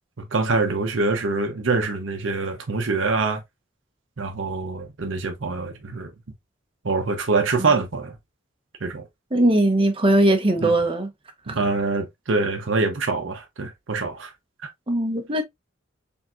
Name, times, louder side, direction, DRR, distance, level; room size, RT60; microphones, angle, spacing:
voice 1, 0.2-3.4 4.2-6.1 6.8-8.2 8.8-9.1 10.6-10.7 11.5-14.3 14.6-14.7, right 3 dB, 85° right, 0.8 m, -25 dB
voice 2, 9.3-11.1 14.9-15.4, right 1 dB, 30° right, 0.9 m, -19 dB
4.3 x 3.6 x 2.4 m
head